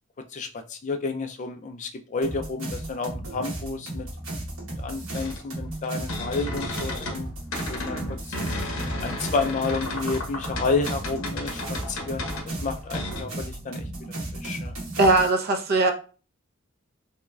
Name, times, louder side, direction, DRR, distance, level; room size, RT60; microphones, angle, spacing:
voice 1, 0.3-4.1 4.8-8.4 9.0-13.8 14.3-14.7, left 4 dB, 35° left, 0.3 m, -30 dB
sound 1, 2.2-15.3, right 1 dB, 70° right, 1.2 m, -35 dB
sound 2, 5.1-7.2 7.5-13.2, left 1 dB, 70° left, 0.8 m, -33 dB
voice 2, 15.0-15.9, right 2 dB, 45° right, 0.6 m, -19 dB
3.6 x 3.0 x 2.2 m
head